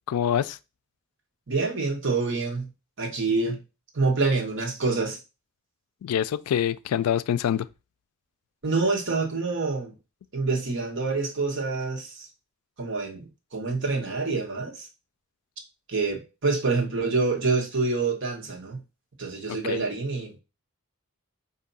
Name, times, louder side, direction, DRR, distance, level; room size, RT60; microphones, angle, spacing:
voice 1, 0.1-0.6 6.0-7.7 19.5-19.8, left 9 dB, 85° left, 0.3 m, -26 dB
voice 2, 1.5-2.7 3.0-3.6 3.9-5.2 8.6-9.9 10.3-12.3 12.8-14.9 15.9-18.8 19.2-20.4, right 3 dB, 55° right, 1.2 m, -27 dB
4.5 x 2.7 x 4.0 m
head